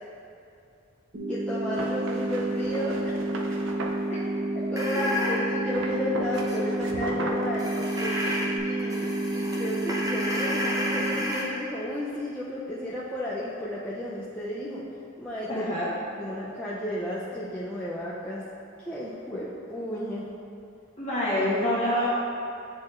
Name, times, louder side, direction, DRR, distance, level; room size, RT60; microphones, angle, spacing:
sound 1, 1.1-11.1, right 1 dB, 45° right, 1.2 m, -30 dB
voice 1, 1.3-3.2 4.7-7.7 8.0-8.1 8.6-14.8 15.2-15.7 16.2-18.4 18.9-20.3, left 1 dB, 5° left, -9 dB, 0.5 m, -33 dB
sound 2, 1.7-4.0 5.7-8.6, right 2 dB, 75° right, 0.5 m, -37 dB
sound 3, 4.8-5.4 6.3-6.6 7.6-8.4 8.8-11.4, left 1 dB, 15° right, 0.8 m, -31 dB
voice 2, 15.5-15.9 21.0-22.1, left 1 dB, 35° left, -9 dB, 1.1 m, -26 dB
9.3 x 4.3 x 2.5 m, 2.6 s
head